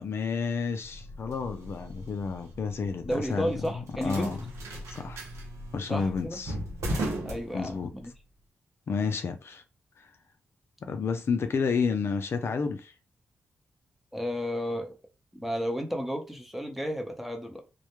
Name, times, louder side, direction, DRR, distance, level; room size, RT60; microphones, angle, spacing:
voice 1, 0.0-4.4 4.9-5.2 5.7-6.6 7.5-7.9 8.9-9.6 10.0-10.1 10.8-12.9, left 5 dB, 60° left, 0.4 m, -30 dB
sound 1, 0.8-8.1, right 1 dB, 85° right, 0.6 m, -38 dB
voice 2, 3.0-4.3 5.9-6.4 7.2-8.1 14.1-15.0 15.3-17.6, equal, 5° right, 0.7 m, -32 dB
2.1 x 2.1 x 2.9 m
cardioid pair, 50°, 5 cm